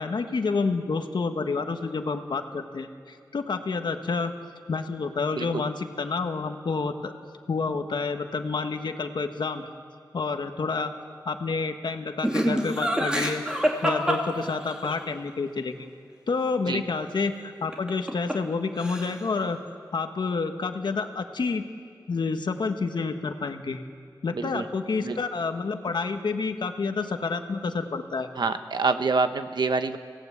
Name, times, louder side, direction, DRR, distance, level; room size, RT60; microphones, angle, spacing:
voice 1, 0.0-4.3 4.7-7.1 7.5-9.7 10.1-10.9 11.2-13.4 13.8-15.9 16.3-19.6 19.9-21.7 22.1-23.8 24.2-28.3, left 4 dB, 70° left, 6 dB, 1.4 m, -29 dB
voice 2, 5.3-5.7 16.7-16.8 24.3-24.7 25.0-25.2 28.4-30.0, right 4 dB, 70° right, 9 dB, 1.1 m, -26 dB
Laughter, 12.2-14.9 17.7-18.5 18.8-19.3, equal, 10° right, 2.5 m, -26 dB
27.5 x 17.0 x 8.3 m, 2.2 s
wide cardioid pair, 110°, 8 cm